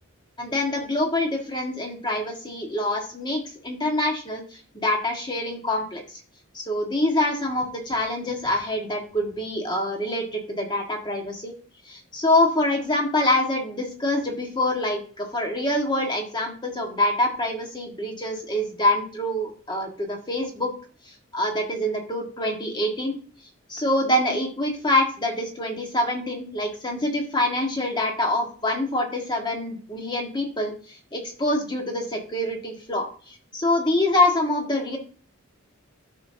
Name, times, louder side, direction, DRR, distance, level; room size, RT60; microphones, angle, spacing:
voice 1, 0.4-6.0 6.5-11.5 11.8-20.7 21.3-23.1 23.7-35.0, left 1 dB, 20° left, 2 dB, 1.6 m, -25 dB
12.5 x 5.9 x 2.8 m, 0.42 s
head